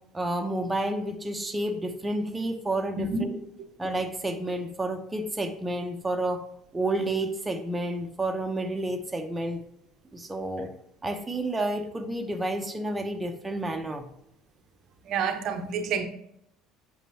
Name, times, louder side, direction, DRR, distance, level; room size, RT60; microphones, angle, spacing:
voice 1, 0.1-3.4 3.8-6.4 6.7-9.6 10.1-10.7 11.0-14.1, right 1 dB, 15° right, 4 dB, 0.9 m, -30 dB
voice 2, 15.0-16.0, right 5 dB, 50° right, 6 dB, 0.8 m, -28 dB
8.1 x 6.5 x 2.9 m, 0.75 s
figure-of-eight pair, 60°, 0 cm